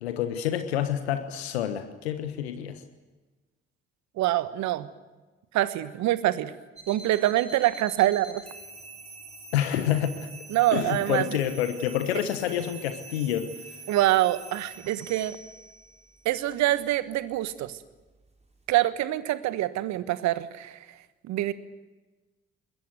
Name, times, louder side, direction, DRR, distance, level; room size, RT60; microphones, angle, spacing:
voice 1, 0.0-2.8 9.5-10.3 10.7-13.5, left 10 dB, 80° left, 9 dB, 1.3 m, -28 dB
voice 2, 4.2-4.9 5.5-6.5 6.9-8.4 10.5-11.2 13.9-15.4 16.2-17.7 18.7-20.8 21.3-21.5, right 15 dB, 60° right, 14 dB, 1.4 m, -25 dB
sound 1, 6.8-18.8, right 3 dB, 20° right, 6.8 m, -46 dB
26.0 x 21.5 x 7.8 m, 1.2 s
figure-of-eight pair, 45°, 32 cm